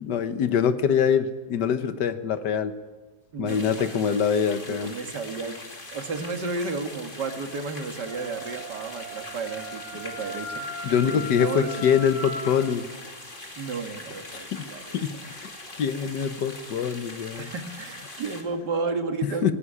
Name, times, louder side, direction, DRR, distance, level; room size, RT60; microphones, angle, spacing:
voice 1, 0.0-2.7 3.4-4.9 10.8-12.8 14.5-15.5 15.8-17.5 19.2-19.5, left 7 dB, 80° left, 11 dB, 1.7 m, -24 dB
voice 2, 3.3-4.0 4.7-5.6 5.9-11.8 13.6-15.0 17.4-19.5, right 4 dB, 75° right, 6 dB, 2.4 m, -33 dB
sound 1, 3.5-18.4, left 2 dB, 30° left, 2.7 m, -42 dB
Wind instrument woodwind instrument, 8.1-12.7, equal, 50° left, 4.7 m, -37 dB
18.0 x 17.0 x 9.9 m, 1.3 s
omnidirectional pair, 1.8 m